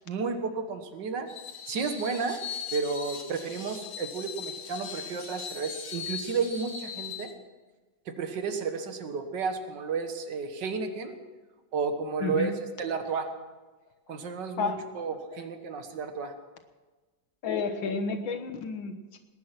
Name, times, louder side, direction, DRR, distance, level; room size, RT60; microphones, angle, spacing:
voice 1, 0.1-1.3 1.7-2.4 2.7-7.3 8.1-11.2 11.7-12.5 12.8-13.3 14.1-16.3, right 5 dB, 70° right, 7 dB, 2.0 m, -32 dB
Screech, 1.3-7.3, left 7 dB, 55° left, 2.0 m, -39 dB
voice 2, 12.2-12.5 14.6-14.8 17.4-19.2, left 5 dB, 85° left, 6 dB, 2.1 m, -31 dB
19.5 x 10.5 x 6.0 m, 1.3 s
omnidirectional pair, 2.0 m